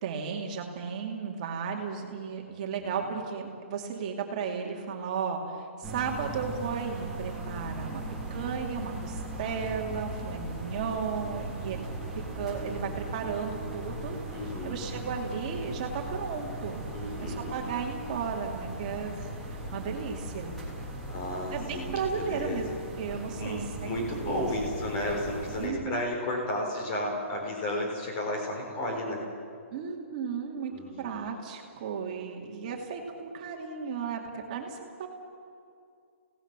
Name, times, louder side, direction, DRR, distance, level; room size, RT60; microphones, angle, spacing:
voice 1, 0.0-8.0 8.3-11.8 12.2-14.2 14.6-16.9 17.2-20.5 21.5-23.9 24.2-24.5 25.6-26.0 29.7-30.7 31.0-35.1, right 6 dB, 30° right, 1 dB, 2.5 m, -34 dB
sound 1, 5.8-25.7, right 2 dB, ahead, 3.0 m, -38 dB
voice 2, 14.3-14.8 16.9-17.5 21.1-22.6 23.3-29.2 30.7-31.3, left 1 dB, 25° left, 1 dB, 4.0 m, -33 dB
28.5 x 18.0 x 6.2 m, 2.4 s
hypercardioid pair, 175°, 7 cm